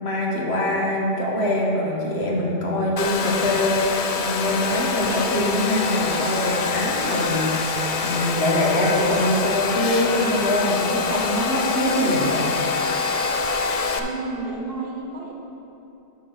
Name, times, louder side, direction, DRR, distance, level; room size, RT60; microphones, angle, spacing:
voice 1, 0.0-7.7 8.0-12.5, left 1 dB, 75° left, -3 dB, 1.6 m, -23 dB
Domestic sounds home sounds, 3.0-14.0, left 5 dB, 50° left, 0.4 m, -25 dB
Clock, 4.8-11.3, right 1 dB, 85° right, 1.5 m, -38 dB
voice 2, 14.0-15.3, right 3 dB, 60° right, -1 dB, 1.4 m, -31 dB
10.0 x 6.6 x 4.1 m, 2.9 s
omnidirectional pair, 1.1 m